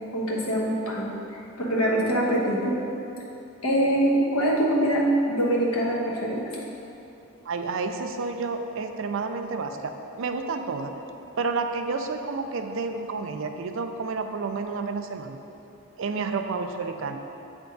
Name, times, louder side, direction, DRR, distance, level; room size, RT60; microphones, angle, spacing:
voice 1, 0.1-1.1 1.6-2.8 3.6-6.4, right 1 dB, 75° left, -4 dB, 1.1 m, -23 dB
voice 2, 7.5-9.9 10.2-10.9 11.4-15.4 16.0-17.2, right 4 dB, 60° right, 6 dB, 0.4 m, -30 dB
8.1 x 3.5 x 3.8 m, 2.9 s
head